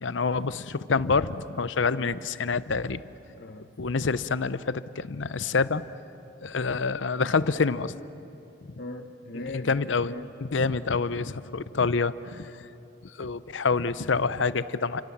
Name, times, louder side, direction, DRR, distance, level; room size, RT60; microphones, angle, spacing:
voice 1, 0.0-3.0 3.8-5.8 6.4-8.0 9.5-10.1 10.5-12.5 13.2-15.0, left 4 dB, 75° left, 15 dB, 0.7 m, -27 dB
voice 2, 1.7-2.1 3.4-3.7 8.8-10.4, left 2 dB, 50° left, 5 dB, 1.0 m, -40 dB
30.0 x 26.0 x 7.3 m, 3.0 s
head